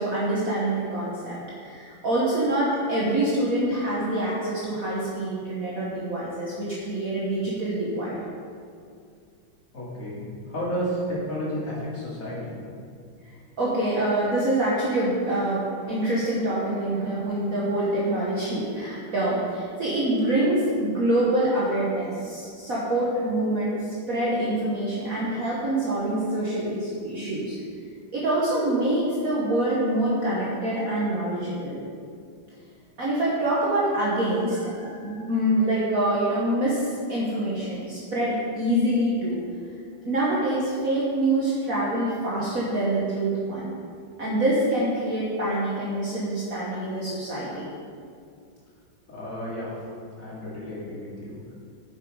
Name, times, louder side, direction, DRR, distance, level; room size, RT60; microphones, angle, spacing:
voice 1, 0.0-8.2 13.6-23.8 24.1-27.6 28.1-31.8 33.0-39.4 40.0-43.7 44.2-47.7, right 1 dB, 45° right, -7 dB, 1.6 m, -25 dB
voice 2, 9.7-12.6 49.1-49.7 50.2-51.5, equal, 40° left, -7 dB, 2.6 m, -32 dB
7.9 x 7.1 x 4.9 m, 2.3 s
omnidirectional pair, 2.3 m